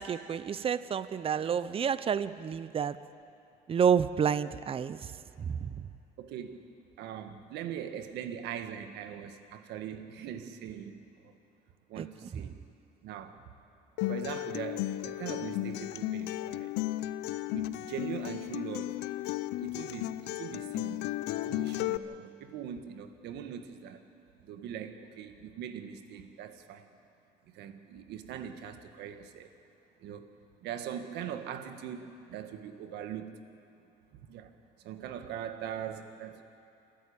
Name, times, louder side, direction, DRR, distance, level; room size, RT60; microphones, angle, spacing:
voice 1, 0.0-3.0 3.7-5.9 12.0-12.1 12.3-12.4, right 7 dB, 35° right, 15 dB, 0.7 m, -30 dB
voice 2, 6.2-6.7 7.0-11.3 11.9-12.6 13.0-13.4 14.1-16.7 17.5-19.0 19.6-21.0 21.3-24.0 24.4-26.9 27.4-29.5 30.0-30.3 30.6-33.4 34.3-36.4, right 9 dB, 80° right, 8 dB, 1.6 m, -41 dB
Acoustic guitar, 14.0-22.0, left 16 dB, 90° left, 0.6 m, -34 dB
29.0 x 13.5 x 8.7 m, 2.6 s
cardioid pair, 110°, 17 cm